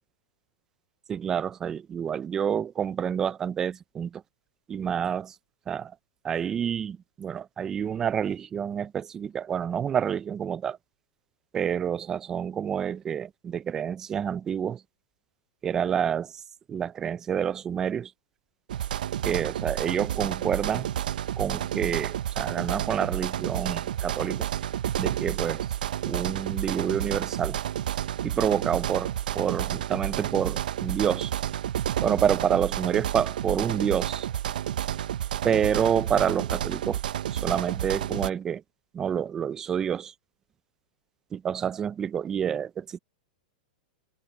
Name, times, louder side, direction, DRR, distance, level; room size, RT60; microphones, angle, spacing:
voice 1, 1.1-4.2 4.7-5.4 5.7-5.9 6.2-10.8 11.5-14.8 15.6-16.4 16.7-18.1 19.2-20.9 21.4-24.5 25.0-25.7 26.0-27.6 28.2-31.3 32.0-34.3 35.4-37.0 37.3-38.6 38.9-40.1 41.3-43.0, right 8 dB, 10° right, 0.3 m, -28 dB
sound 1, 18.7-38.3, right 11 dB, 70° right, 0.5 m, -30 dB
supercardioid pair, 180°, 5 cm